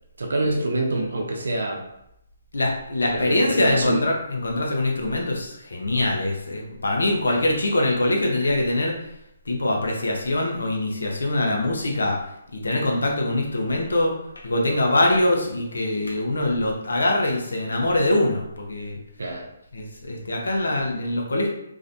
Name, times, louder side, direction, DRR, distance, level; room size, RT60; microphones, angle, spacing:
voice 1, 0.2-1.8 3.1-4.0 7.3-7.4 19.2-19.5, right 2 dB, 80° right, 1 dB, 0.5 m, -26 dB
voice 2, 2.5-8.9 9.5-12.2 12.5-14.1 14.4-19.0 19.7-21.5, left 1 dB, 85° left, 0 dB, 0.6 m, -23 dB
2.4 x 2.1 x 2.6 m, 0.80 s
hypercardioid pair, 150°, 0 cm